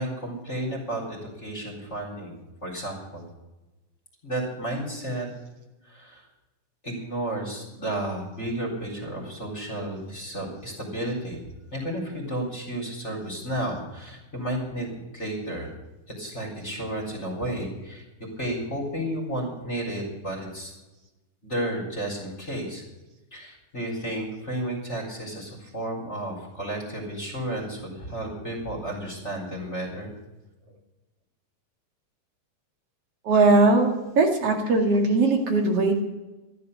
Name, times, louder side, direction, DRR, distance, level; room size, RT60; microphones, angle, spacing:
voice 1, 0.0-2.3 2.6-3.2 4.2-5.3 5.8-6.2 6.8-11.4 11.7-14.9 15.1-15.7 16.2-18.0 18.4-20.7 21.4-22.8 23.3-30.1, right 1 dB, 20° left, -2 dB, 4.1 m, -32 dB
voice 2, 33.2-36.0, right 3 dB, 50° right, 3 dB, 3.0 m, -20 dB
14.5 x 12.5 x 6.8 m, 1.1 s
omnidirectional pair, 3.6 m